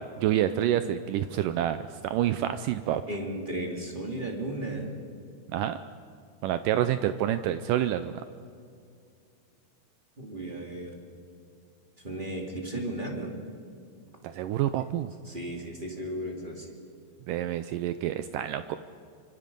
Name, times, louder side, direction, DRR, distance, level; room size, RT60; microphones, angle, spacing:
voice 1, 0.0-3.0 5.5-5.8 6.4-8.2 14.2-15.1 17.3-18.8, right 11 dB, 85° right, 11 dB, 1.9 m, -28 dB
voice 2, 3.1-4.9 10.2-10.9 12.0-13.4 15.3-16.7, right 1 dB, 15° right, 1 dB, 1.8 m, -35 dB
25.5 x 24.5 x 5.3 m, 2.3 s
omnidirectional pair, 4.5 m